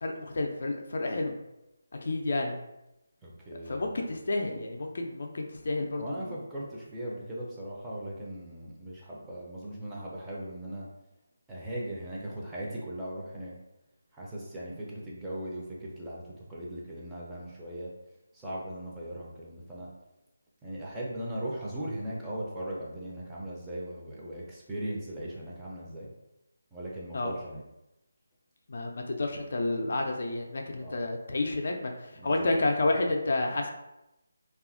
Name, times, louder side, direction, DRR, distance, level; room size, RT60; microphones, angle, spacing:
voice 1, 0.0-1.4 2.0-2.6 3.7-6.4 27.1-27.3 28.7-33.7, left 2 dB, 55° left, 2 dB, 0.4 m, -30 dB
voice 2, 3.2-3.9 6.0-10.9 11.5-13.5 14.1-17.9 18.3-19.9 20.6-26.1 26.7-27.6 30.8-31.0 32.2-32.6, right 1 dB, 10° right, -7 dB, 0.5 m, -38 dB
2.7 x 2.3 x 2.4 m, 0.92 s
figure-of-eight pair, 155°, 0 cm